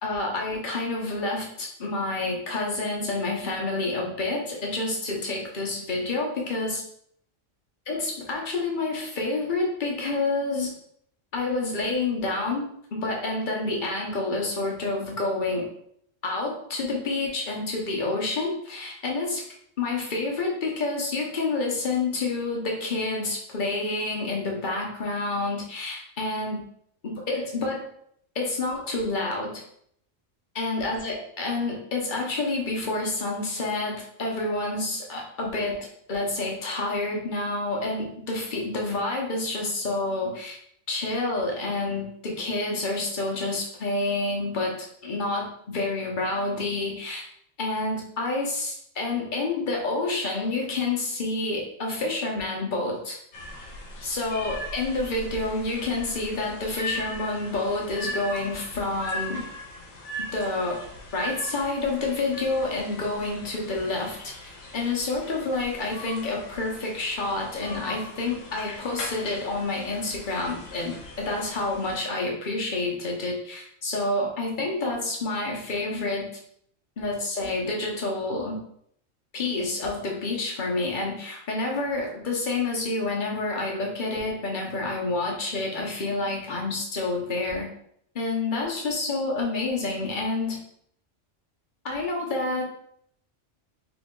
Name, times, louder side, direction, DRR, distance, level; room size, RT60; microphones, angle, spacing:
voice 1, 0.0-6.8 7.9-10.7 11.3-15.6 16.2-19.4 19.8-26.6 27.0-27.9 28.3-29.6 30.5-35.8 36.1-40.6 40.9-47.2 47.6-53.2 54.0-59.4 60.2-60.8 61.1-76.3 77.0-78.6 79.3-87.7 88.1-90.6 91.8-92.6, left 2 dB, 45° left, -1 dB, 0.9 m, -28 dB
sound 1, 53.3-72.0, left 1 dB, 85° left, 1.1 m, -39 dB
3.1 x 2.9 x 3.7 m, 0.68 s
omnidirectional pair, 1.3 m